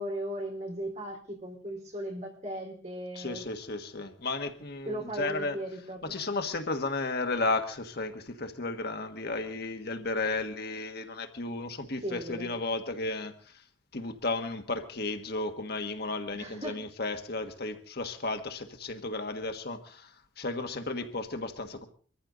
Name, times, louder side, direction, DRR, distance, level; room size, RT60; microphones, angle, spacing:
voice 1, 0.0-3.4 4.8-6.1 12.0-12.5 16.3-16.9, right 1 dB, 35° right, 4.3 m, -37 dB
voice 2, 3.1-5.6 6.0-13.6 13.9-21.8, left 3 dB, 55° left, 1.5 m, -34 dB
23.5 x 14.5 x 3.9 m
head